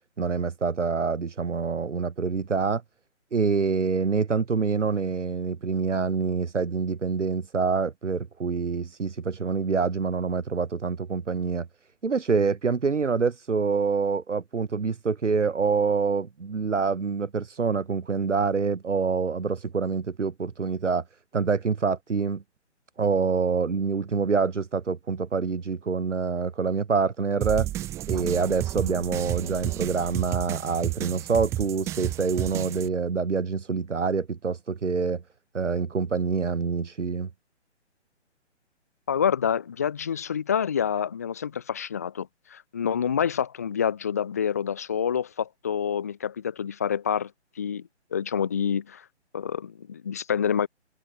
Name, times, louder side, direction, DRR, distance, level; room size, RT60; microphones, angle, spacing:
voice 1, 0.2-2.8 3.3-11.7 12.0-21.0 21.3-22.4 23.0-27.7 28.1-35.2 35.5-37.3, right 5 dB, 90° right, 0.7 m, -26 dB
sound 1, 27.4-32.9, right 14 dB, 10° right, 0.9 m, -31 dB
voice 2, 39.1-47.3 47.6-47.8 48.1-49.0 49.3-50.7, left 8 dB, 15° left, 0.5 m, -27 dB
figure-of-eight pair, 135°, 35 cm